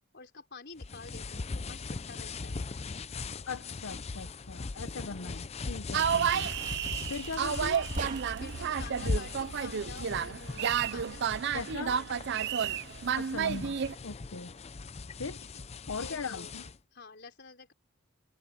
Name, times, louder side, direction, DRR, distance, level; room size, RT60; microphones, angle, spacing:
voice 1, 0.1-2.6 8.3-12.1 12.4-12.6 15.5-15.7 16.0-17.7, left 4 dB, 50° left, 4.5 m, -49 dB
sound 1, 0.8-16.8, left 3 dB, 30° left, 0.5 m, -40 dB
voice 2, 3.5-6.5 7.1-7.9 11.5-12.0 13.2-14.5 15.2-15.4 15.9-16.6, left 4 dB, 70° left, 0.8 m, -39 dB
sound 2, 5.9-13.9, right 8 dB, 50° right, 0.5 m, -31 dB
sound 3, 8.0-8.7, right 2 dB, 35° right, 2.8 m, -38 dB
head